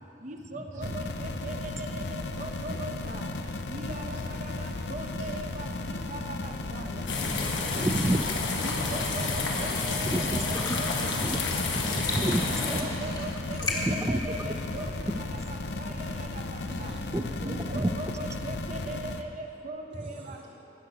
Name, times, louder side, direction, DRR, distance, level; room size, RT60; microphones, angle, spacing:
voice 1, 0.2-3.3 3.7-6.9 8.6-11.1 12.5-14.9 15.8-16.3 16.8-16.9 17.4-20.4, right 2 dB, 45° right, 3 dB, 0.8 m, -40 dB
sound 1, 0.8-19.2, left 2 dB, 65° left, 0.6 m, -35 dB
voice 2, 6.5-7.9 11.1-12.1 16.6-17.0 19.9-20.5, right 1 dB, 75° right, -6 dB, 2.7 m, -51 dB
sound 2, 6.8-15.3, left 2 dB, 25° left, 1.6 m, -40 dB
sound 3, 7.0-12.8, left 3 dB, 90° left, 1.4 m, -30 dB
voice 3, 7.7-8.2 10.1-10.8 11.2-11.4 11.7-12.8 13.8-14.2 14.5-14.6 17.1-17.9, right 1 dB, 15° right, 9 dB, 0.4 m, -29 dB
13.0 x 5.9 x 9.2 m, 2.9 s
head